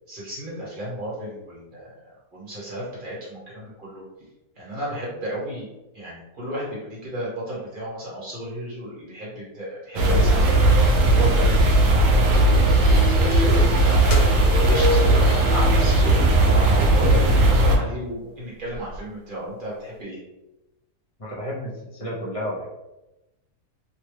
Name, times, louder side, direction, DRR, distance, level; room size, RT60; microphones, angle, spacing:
voice 1, 0.1-1.9 2.3-4.0 4.6-5.7 5.9-10.6 11.1-14.2 14.6-17.2 17.5-20.2, equal, 35° right, -7 dB, 1.1 m, -33 dB
sound 1, 10.0-17.8, right 1 dB, 70° right, 0.9 m, -17 dB
sound 2, 12.3-16.1, equal, 5° right, 0.8 m, -33 dB
sound 3, 13.3-16.3 16.6-16.7 17.5-17.6 18.0-18.1 18.4-19.0, left 1 dB, 65° left, 0.8 m, -30 dB
voice 2, 21.2-22.7, equal, 35° left, -7 dB, 0.5 m, -31 dB
2.8 x 2.2 x 3.2 m, 0.97 s
omnidirectional pair, 1.6 m